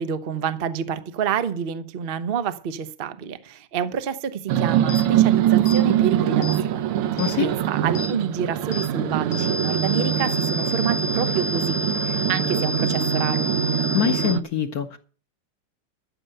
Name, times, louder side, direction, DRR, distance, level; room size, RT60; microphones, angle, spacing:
voice 1, 0.0-11.7 12.0-13.5, right 7 dB, 65° right, 0.5 m, -28 dB
sound 1, 4.5-14.4, right 11 dB, 85° right, 1.7 m, -23 dB
sound 2, 4.9-5.0 5.7-5.8 6.4-6.6 7.2-7.3 7.9-8.1 8.7-8.9 9.3-14.3, left 2 dB, 80° left, 2.9 m, -30 dB
voice 2, 7.2-7.5 13.9-15.0, left 9 dB, 55° left, 1.1 m, -24 dB
13.0 x 6.7 x 7.8 m
omnidirectional pair, 2.4 m